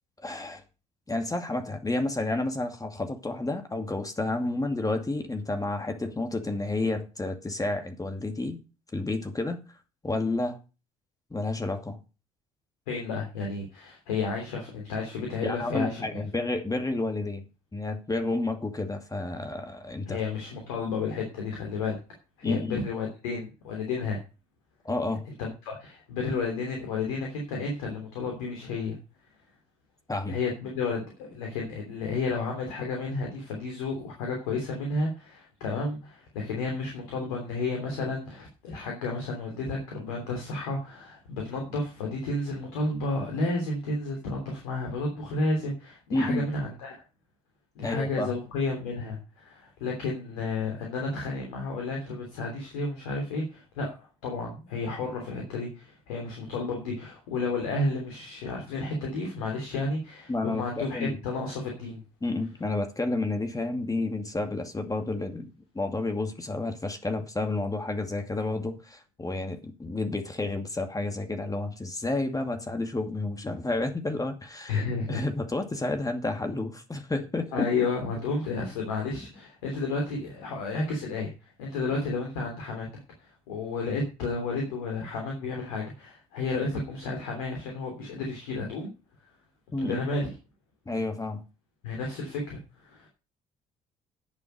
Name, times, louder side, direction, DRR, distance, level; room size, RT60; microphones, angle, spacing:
voice 1, 0.2-0.6 1.1-8.6 8.9-9.6 10.0-10.6 11.3-12.0 15.4-17.5 17.7-20.2 22.4-22.8 24.8-25.3 30.1-30.4 46.1-46.5 47.8-48.3 60.3-61.2 62.2-65.5 65.7-74.8 75.1-77.7 89.7-90.0 90.9-91.4, left 2 dB, 20° left, 2.4 m, -30 dB
voice 2, 12.9-16.2 20.1-22.0 22.4-24.2 25.4-29.0 30.3-47.0 47.7-62.0 74.7-75.2 77.5-81.3 81.6-82.9 83.2-88.9 89.8-90.3 91.8-93.1, left 3 dB, 85° left, 3.2 m, -32 dB
11.0 x 7.2 x 6.7 m
hypercardioid pair, 50°, 18 cm